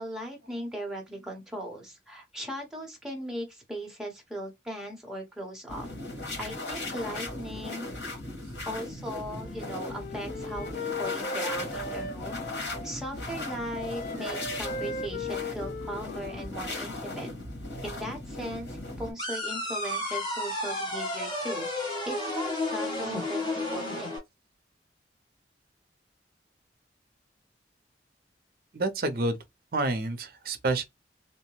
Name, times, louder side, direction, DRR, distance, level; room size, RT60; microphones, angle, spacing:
voice 1, 0.0-5.9 6.4-7.9 8.7-12.5 12.8-17.3 17.8-24.1, equal, 5° right, 1.0 m, -38 dB
sound 1, 5.7-19.1, left 2 dB, 70° left, 1.5 m, -37 dB
Wind instrument woodwind instrument, 9.3-12.9 13.3-16.9, left 2 dB, 50° left, 0.5 m, -38 dB
sound 2, 19.2-24.2, left 2 dB, 25° left, 1.2 m, -32 dB
voice 2, 28.7-29.4 29.7-30.8, right 2 dB, 55° right, 0.6 m, -28 dB
2.8 x 2.1 x 3.0 m
head